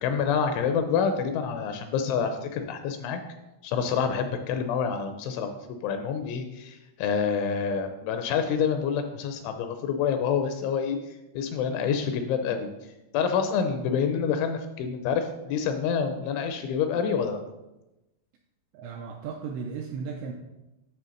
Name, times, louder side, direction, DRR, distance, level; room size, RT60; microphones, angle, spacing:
voice 1, 0.0-3.2 3.6-12.7 13.1-17.4, left 6 dB, 80° left, 7 dB, 2.9 m, -27 dB
voice 2, 18.7-20.3, right 5 dB, 85° right, 1 dB, 2.5 m, -35 dB
9.4 x 3.4 x 6.4 m, 0.97 s
omnidirectional pair, 5.6 m